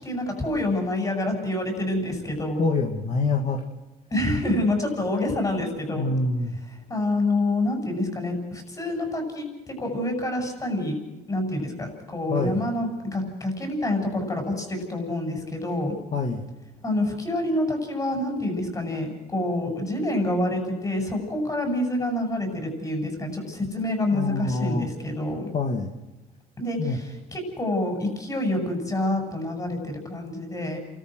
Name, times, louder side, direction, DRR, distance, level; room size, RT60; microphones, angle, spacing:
voice 1, 0.0-2.6 4.1-6.1 6.9-10.9 11.3-15.9 16.8-25.5 26.6-27.0 27.3-30.8, left 1 dB, 20° left, 3 dB, 7.8 m, -27 dB
voice 2, 2.6-3.6 5.9-6.6 12.3-12.6 16.1-16.5 24.1-24.9 25.5-25.9 26.8-27.0, left 3 dB, 40° left, 3 dB, 2.4 m, -26 dB
29.5 x 13.5 x 6.4 m, 1.0 s
cardioid pair, 110°, 17 cm